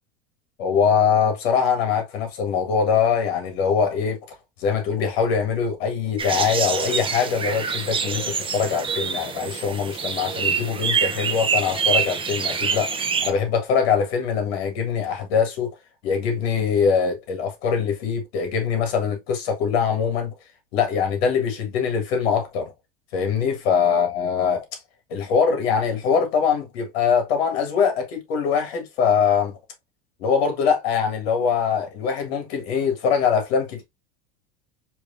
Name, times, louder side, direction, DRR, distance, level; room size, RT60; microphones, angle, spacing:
voice 1, 0.6-4.2 4.6-12.9 13.2-15.7 16.0-20.3 20.7-22.7 23.1-24.7 25.1-29.6 30.2-33.8, left 6 dB, 75° left, 1.6 m, -22 dB
sound 1, 6.2-13.3, right 6 dB, 15° right, 0.6 m, -26 dB
4.7 x 2.9 x 2.5 m
supercardioid pair, 110°, 31 cm